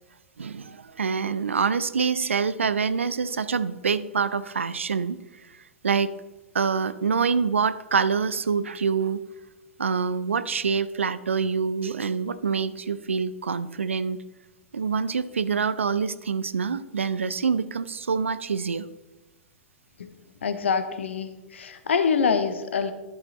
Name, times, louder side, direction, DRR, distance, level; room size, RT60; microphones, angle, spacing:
voice 1, 0.4-5.2 5.8-6.1 6.5-9.2 9.8-14.2 14.7-18.8, right 5 dB, 75° right, 15 dB, 0.4 m, -26 dB
voice 2, 20.4-22.9, left 6 dB, 70° left, 11 dB, 0.8 m, -25 dB
11.0 x 5.7 x 4.0 m, 1.1 s
figure-of-eight pair, 100°, 7 cm